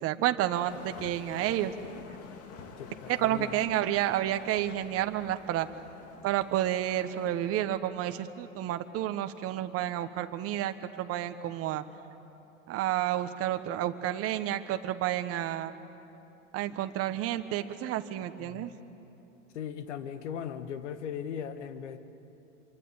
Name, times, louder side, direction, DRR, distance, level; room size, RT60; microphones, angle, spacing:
voice 1, 0.0-1.7 3.1-5.7 6.2-11.8 12.7-15.7 16.5-18.7, right 12 dB, 40° right, 9 dB, 1.3 m, -30 dB
sound 1, 0.7-7.8, left 5 dB, 40° left, 2.4 m, -48 dB
voice 2, 2.8-3.5 18.4-18.8 19.5-22.0, left 8 dB, 70° left, 10 dB, 1.7 m, -38 dB
26.5 x 24.0 x 7.3 m, 2.9 s
hypercardioid pair, 95°, 37 cm